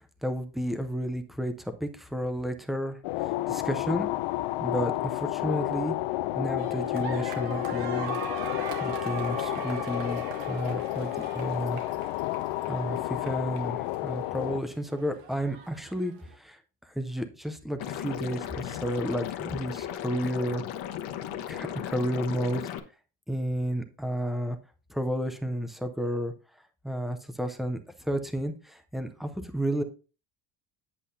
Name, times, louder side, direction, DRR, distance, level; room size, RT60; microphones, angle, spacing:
voice 1, 0.2-4.1 4.6-6.0 6.4-8.2 8.8-11.8 12.7-20.7 21.5-22.7 23.3-24.6 24.9-26.3 26.8-29.8, equal, ahead, 8 dB, 0.4 m, -32 dB
sound 1, 3.0-14.6, left 17 dB, 90° left, 0.6 m, -31 dB
sound 2, 6.6-16.3, right 3 dB, 65° right, 1.6 m, -40 dB
Liquid, 17.8-22.8, left 10 dB, 70° left, 1.1 m, -36 dB
8.5 x 7.5 x 2.6 m, 0.34 s
cardioid pair, 160°, 49 cm